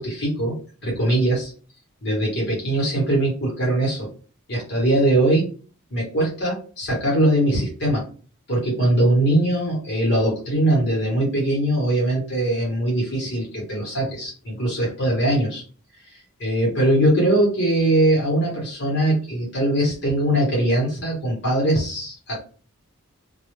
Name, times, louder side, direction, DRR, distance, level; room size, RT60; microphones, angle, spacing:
voice 1, 0.0-1.5 2.0-4.1 4.5-5.5 5.9-8.0 8.5-15.6 16.4-22.4, right 1 dB, 50° left, -3 dB, 0.9 m, -21 dB
2.2 x 2.1 x 3.0 m, 0.39 s
head